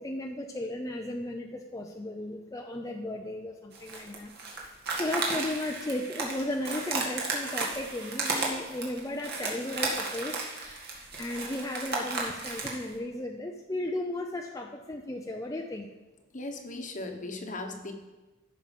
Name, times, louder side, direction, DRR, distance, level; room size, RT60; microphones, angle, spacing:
voice 1, 0.0-4.3 4.9-15.9, left 1 dB, 15° left, 1 dB, 0.6 m, -35 dB
sound 1, 3.7-12.8, right 3 dB, 55° right, 2.0 m, -34 dB
voice 2, 16.3-17.9, left 2 dB, 40° left, 5 dB, 1.2 m, -37 dB
13.5 x 6.0 x 5.4 m, 1.1 s
head